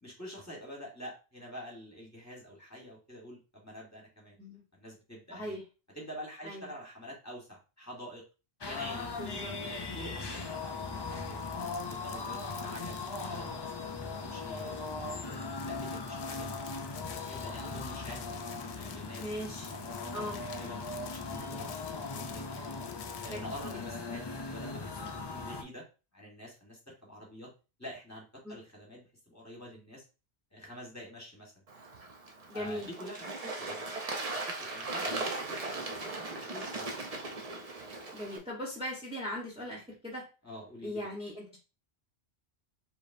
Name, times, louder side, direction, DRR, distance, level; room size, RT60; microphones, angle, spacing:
voice 1, 0.0-4.3 4.7-5.5 5.9-8.2 8.6-9.2 9.6-13.0 13.3-13.7 14.0-15.4 15.7-16.5 17.0-18.2 18.7-22.4 23.2-25.9 26.1-27.5 27.8-30.0 30.5-31.5 32.5-34.1 34.5-37.3 40.4-41.1, equal, 15° left, -3 dB, 1.4 m, -47 dB
voice 2, 5.3-5.6 6.4-6.7 9.2-9.5 19.2-19.7 20.1-20.4 23.3-23.4 28.4-28.6 32.5-32.9 38.1-40.2 40.8-41.6, equal, 5° right, -2 dB, 1.0 m, -39 dB
sound 1, 8.6-25.6, left 3 dB, 40° left, 0.3 m, -39 dB
sound 2, 11.2-13.8 14.1-14.2 14.6-24.1, left 7 dB, 75° left, 0.8 m, -51 dB
Bird / Water, 31.7-38.4, right 2 dB, 40° right, 0.7 m, -38 dB
4.9 x 2.9 x 2.6 m, 0.32 s
omnidirectional pair, 1.1 m